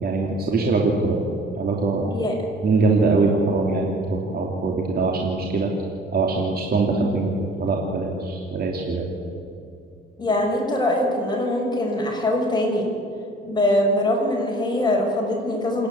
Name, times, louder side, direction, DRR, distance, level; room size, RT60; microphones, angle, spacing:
voice 1, 0.0-1.2 1.6-2.1 2.6-5.7 6.1-7.3 7.6-9.1, right 3 dB, 50° right, 0 dB, 2.8 m, -22 dB
voice 2, 10.2-12.9 13.4-15.9, left 1 dB, 20° left, -1 dB, 6.1 m, -22 dB
27.0 x 10.5 x 9.7 m, 2.6 s
cardioid pair, 90°, 20 cm